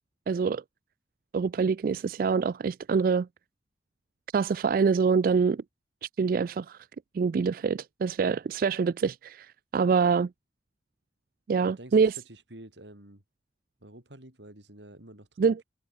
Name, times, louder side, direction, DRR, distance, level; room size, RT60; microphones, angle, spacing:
voice 1, 0.3-0.6 1.3-3.3 4.3-5.6 6.0-6.8 7.1-10.3 11.5-12.2 15.4-15.6, right 5 dB, 50° right, 0.3 m, -25 dB
voice 2, 11.6-12.0 12.2-13.2 13.8-15.6, right 1 dB, 85° right, 4.7 m, -49 dB
head